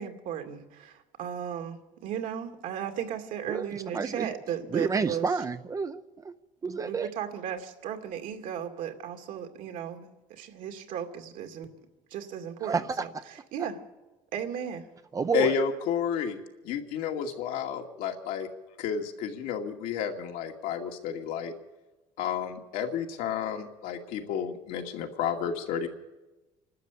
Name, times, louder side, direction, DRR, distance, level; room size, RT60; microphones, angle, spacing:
voice 1, 0.0-5.3 6.8-11.7 12.1-13.1 13.5-13.8 14.3-14.9, right 9 dB, 65° right, 6 dB, 2.4 m, -36 dB
voice 2, 3.5-4.3 4.7-6.3 6.6-7.1 12.6-13.1 15.1-15.6, right 5 dB, 25° right, 10 dB, 0.6 m, -30 dB
voice 3, 15.3-16.4 16.6-18.5 18.8-21.5 22.2-25.9, left 7 dB, 75° left, 3 dB, 2.4 m, -31 dB
27.0 x 12.5 x 8.5 m, 1.1 s
cardioid pair, 135°, 14 cm